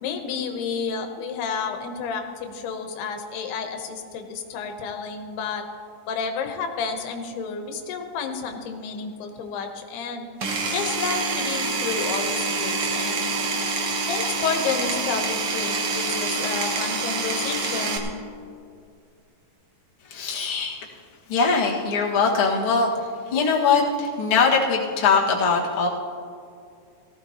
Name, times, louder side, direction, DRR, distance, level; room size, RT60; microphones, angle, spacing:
voice 1, 0.0-5.6 6.1-10.3 10.7-13.3 14.1-18.1, left 5 dB, 90° left, 5 dB, 3.1 m, -30 dB
Power tool, 10.4-18.0, right 3 dB, 70° right, 1.3 m, -26 dB
voice 2, 20.1-20.8 21.3-22.9 23.3-25.9, left 5 dB, 45° left, -4 dB, 2.1 m, -21 dB
18.0 x 15.0 x 2.9 m, 2.4 s
omnidirectional pair, 4.5 m